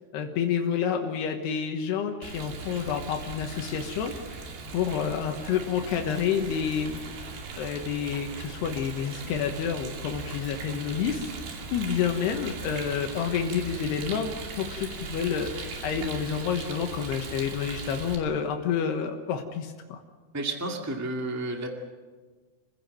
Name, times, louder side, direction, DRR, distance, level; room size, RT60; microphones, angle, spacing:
voice 1, 0.1-4.4 4.7-11.4 11.7-20.0, left 7 dB, 85° left, 3 dB, 3.4 m, -29 dB
Rain, 2.2-18.2, right 4 dB, 90° right, 4.8 m, -39 dB
voice 2, 20.3-21.7, right 2 dB, 20° right, 2 dB, 0.4 m, -31 dB
28.5 x 16.0 x 7.8 m, 1.4 s
omnidirectional pair, 4.7 m